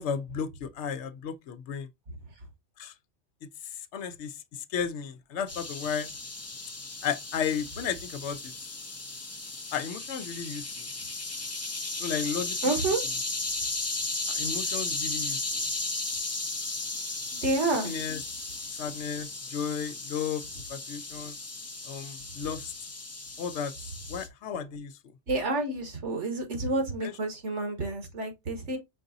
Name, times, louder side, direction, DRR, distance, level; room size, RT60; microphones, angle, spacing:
voice 1, 0.0-1.9 2.8-2.9 3.9-6.1 7.0-8.5 9.7-10.9 12.0-12.7 14.3-15.5 17.8-18.2 18.8-21.4 21.9-22.7 23.4-23.7 24.1-24.9 27.0-27.1, left 7 dB, 75° left, 0.9 m, -34 dB
sound 1, 5.5-24.3, left 2 dB, 25° left, 0.3 m, -35 dB
voice 2, 12.6-13.0 17.3-17.9 25.3-28.8, right 2 dB, 75° right, 1.6 m, -29 dB
5.3 x 3.9 x 2.6 m
omnidirectional pair, 1.2 m